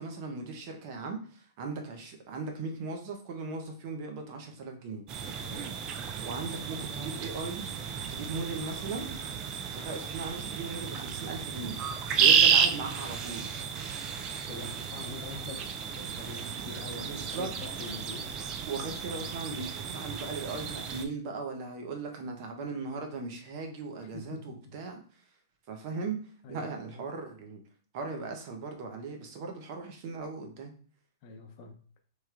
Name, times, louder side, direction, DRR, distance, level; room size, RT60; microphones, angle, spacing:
voice 1, 0.0-5.1 6.2-7.7 8.1-9.2 9.7-11.8 12.2-13.6 16.9-17.5 17.8-17.9 18.7-25.2 25.7-26.2 26.5-27.6 27.9-30.7, right 4 dB, 50° right, 3 dB, 0.8 m, -38 dB
sound 1, 5.1-21.1, right 7 dB, 30° right, 0.4 m, -31 dB
voice 2, 14.2-18.3 24.1-24.6 26.4-27.0 31.2-31.8, left 3 dB, 45° left, 3 dB, 0.7 m, -44 dB
3.1 x 2.8 x 2.4 m, 0.43 s
hypercardioid pair, 120°, 2 cm